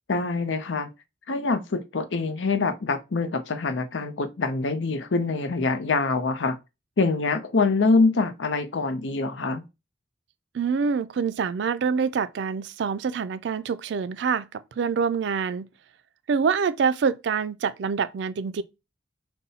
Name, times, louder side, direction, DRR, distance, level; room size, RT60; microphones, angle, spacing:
voice 1, 0.1-0.9 1.3-6.6 7.0-9.6, left 3 dB, 85° left, 0.6 m, -25 dB
voice 2, 10.5-15.7 16.3-18.6, right 6 dB, 70° right, 0.4 m, -26 dB
5.4 x 2.2 x 4.1 m
head